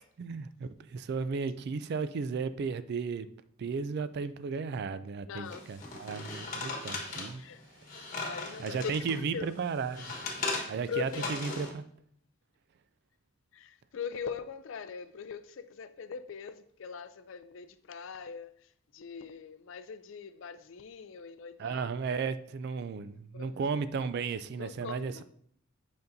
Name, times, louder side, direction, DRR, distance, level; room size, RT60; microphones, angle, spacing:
voice 1, 0.2-3.3 3.6-7.4 8.6-10.1 10.7-11.9 21.6-25.2, right 5 dB, 55° right, 0.3 m, -34 dB
voice 2, 5.3-5.6 7.4-7.6 8.1-9.5 10.5-11.6 13.5-22.2 23.3-23.6 24.6-25.2, left 6 dB, 65° left, 0.4 m, -42 dB
sound 1, 5.5-9.2 9.6-11.7, left 3 dB, 40° left, 1.3 m, -38 dB
8.0 x 5.2 x 2.7 m
head